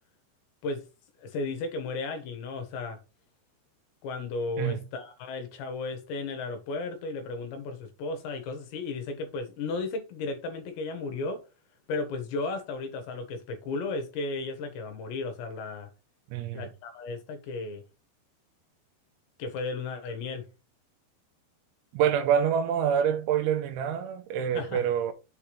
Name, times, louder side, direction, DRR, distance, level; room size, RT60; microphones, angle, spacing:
voice 1, 1.2-3.0 4.0-11.4 11.9-15.9 16.5-17.8 19.4-20.5 24.5-24.8, left 3 dB, 75° left, 3.4 m, -34 dB
voice 2, 16.3-16.7 21.9-25.1, right 8 dB, 85° right, 3.2 m, -26 dB
7.7 x 3.5 x 4.5 m
omnidirectional pair, 5.4 m